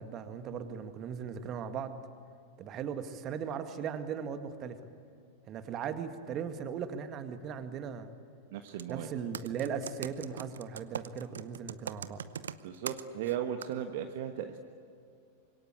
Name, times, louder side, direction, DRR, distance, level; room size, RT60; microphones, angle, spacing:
voice 1, 0.0-2.0 2.6-4.8 5.5-8.1 8.9-12.2, right 7 dB, 35° right, 8 dB, 1.9 m, -38 dB
voice 2, 8.5-9.1 12.6-14.6, right 10 dB, 50° right, 5 dB, 1.4 m, -36 dB
Computer keyboard, 8.7-8.9 9.3-13.3 13.6-13.7, right 8 dB, 70° right, 0.8 m, -40 dB
26.0 x 22.5 x 8.5 m, 2.3 s
figure-of-eight pair, 90°, 0 cm